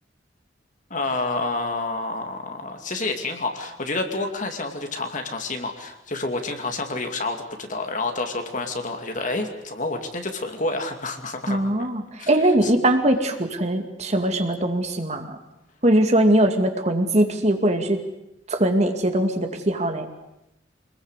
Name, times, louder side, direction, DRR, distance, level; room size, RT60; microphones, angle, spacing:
voice 1, 0.9-11.7 12.2-12.3 12.6-12.7, left 2 dB, 40° left, 4 dB, 2.7 m, -29 dB
voice 2, 11.5-15.4 15.8-18.0 18.5-20.1, right 1 dB, 35° right, 5 dB, 2.3 m, -21 dB
26.0 x 21.0 x 8.3 m, 0.86 s
head